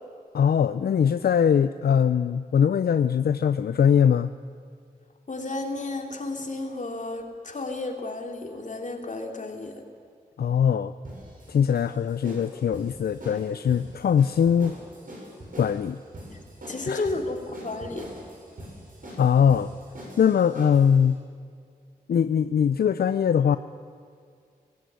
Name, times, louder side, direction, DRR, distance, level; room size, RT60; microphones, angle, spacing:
voice 1, 0.3-4.3 10.4-10.9 11.5-14.7 15.6-16.0 16.9-17.0 19.2-19.7 20.2-21.2 22.1-23.6, left 8 dB, 75° left, 12 dB, 0.5 m, -21 dB
voice 2, 5.3-9.8 16.3-16.4 16.7-18.1, left 2 dB, 50° left, 3 dB, 3.1 m, -32 dB
sound 1, 11.0-20.9, right 1 dB, 60° right, 8.0 m, -43 dB
18.5 x 16.0 x 9.5 m, 2.2 s
cardioid pair, 60°, 16 cm